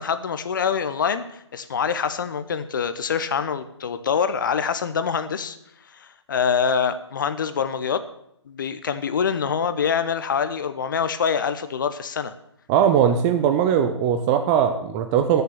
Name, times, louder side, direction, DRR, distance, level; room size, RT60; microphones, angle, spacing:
voice 1, 0.0-5.6 5.9-8.0 8.5-12.3, left 6 dB, 45° left, 11 dB, 0.9 m, -25 dB
voice 2, 12.7-15.4, right 8 dB, 10° right, 7 dB, 0.4 m, -20 dB
14.0 x 6.9 x 6.9 m, 0.75 s
figure-of-eight pair, 140°, 15 cm